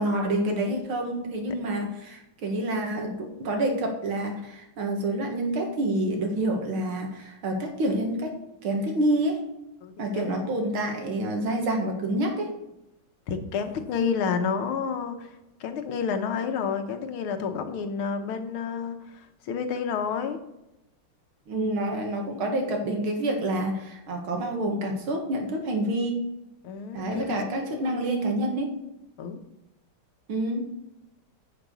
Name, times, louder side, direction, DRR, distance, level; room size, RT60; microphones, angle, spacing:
voice 1, 0.0-8.4 8.6-9.4 10.0-12.5 21.5-26.2 26.9-28.7 30.3-30.6, right 1 dB, 80° right, 2 dB, 2.5 m, -28 dB
voice 2, 9.8-10.4 13.3-15.3 15.6-20.4 26.6-28.1 29.2-29.4, left 6 dB, 90° left, 7 dB, 1.9 m, -30 dB
10.0 x 6.0 x 6.9 m, 0.92 s
omnidirectional pair, 2.3 m